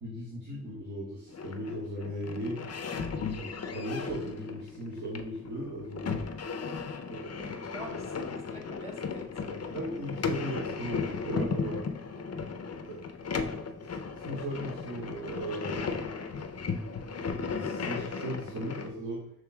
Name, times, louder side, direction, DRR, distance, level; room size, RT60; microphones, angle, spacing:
voice 1, 0.0-2.6 3.3-6.1 7.1-7.3 9.7-11.8 12.8-13.0 14.2-16.1 17.3-19.2, equal, 70° right, -6 dB, 1.4 m, -37 dB
sound 1, 1.3-18.9, left 5 dB, 50° left, 0.5 m, -36 dB
voice 2, 7.3-9.6, equal, 20° right, -1 dB, 1.3 m, -46 dB
6.5 x 3.1 x 2.3 m, 0.78 s
wide cardioid pair, 115°, 32 cm